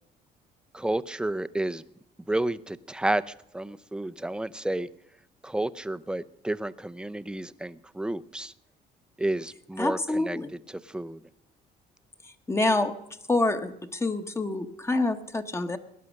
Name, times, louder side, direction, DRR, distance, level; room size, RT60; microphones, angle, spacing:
voice 1, 0.7-1.8 2.3-4.9 5.4-8.5 9.2-10.4 10.9-11.2, right 1 dB, 5° right, 15 dB, 0.5 m, -31 dB
voice 2, 9.8-10.5 12.2-13.0 13.3-15.8, left 2 dB, 15° left, 8 dB, 1.0 m, -27 dB
19.0 x 11.0 x 6.4 m, 0.80 s
cardioid pair, 110°, 17 cm